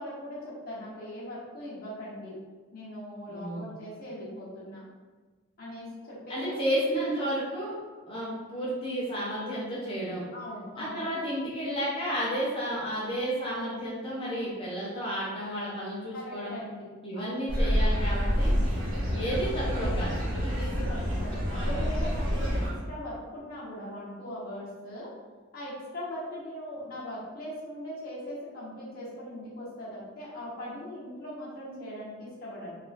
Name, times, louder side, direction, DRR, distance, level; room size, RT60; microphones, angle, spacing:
voice 1, 0.0-2.4 2.7-4.8 5.6-6.7 10.3-11.0 16.1-17.4 18.4-18.7 20.5-21.4 21.6-25.1 25.5-32.8, left 1 dB, 45° left, -8 dB, 1.1 m, -40 dB
voice 2, 3.3-3.7 6.3-7.8 8.1-10.3 10.8-16.6 17.0-18.5 19.1-20.1, equal, 25° left, -7 dB, 0.6 m, -32 dB
sound 1, 17.5-22.7, equal, 65° right, 1.0 m, -27 dB
3.5 x 2.4 x 2.5 m, 1.4 s
head